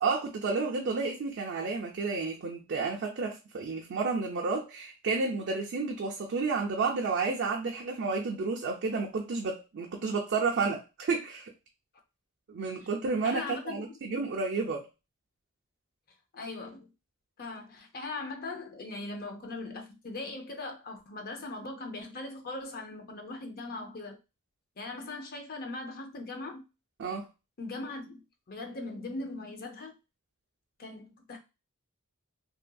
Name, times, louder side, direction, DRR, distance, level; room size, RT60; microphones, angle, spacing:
voice 1, 0.0-11.5 12.5-14.9 27.0-27.3, right 4 dB, 55° right, 0.4 m, -31 dB
voice 2, 13.2-14.0 16.3-16.9 17.4-24.2 24.8-26.6 27.6-28.2 28.5-29.9 30.8-31.4, left 2 dB, 45° left, 0.6 m, -40 dB
2.7 x 2.6 x 2.2 m
head